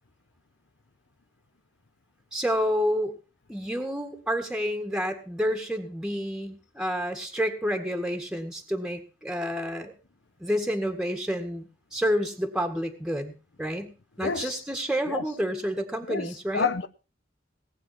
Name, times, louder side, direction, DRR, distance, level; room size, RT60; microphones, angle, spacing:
voice 1, 2.3-3.1 3.5-9.9 10.4-13.3 13.6-13.9 14.2-16.7, equal, 5° right, 1.9 m, -29 dB
voice 2, 14.2-14.6 15.1-15.2 16.1-16.9, left 5 dB, 90° left, 0.9 m, -29 dB
19.0 x 8.3 x 6.0 m
head